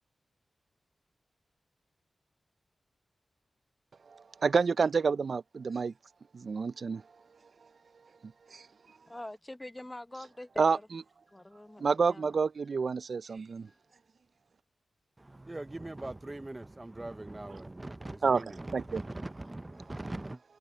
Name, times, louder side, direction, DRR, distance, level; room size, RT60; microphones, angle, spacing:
voice 1, 4.1-5.9 6.3-7.0 8.5-8.7 10.6-10.8 11.8-13.7 18.2-18.4 18.7-19.0, right 5 dB, 65° right, 0.3 m, -28 dB
voice 2, 9.1-10.9 11.3-12.4 13.7-13.8, left 1 dB, 15° left, 1.0 m, -45 dB
voice 3, 15.2-20.4, right 2 dB, 20° right, 0.6 m, -41 dB
wide cardioid pair, 90°, 0 cm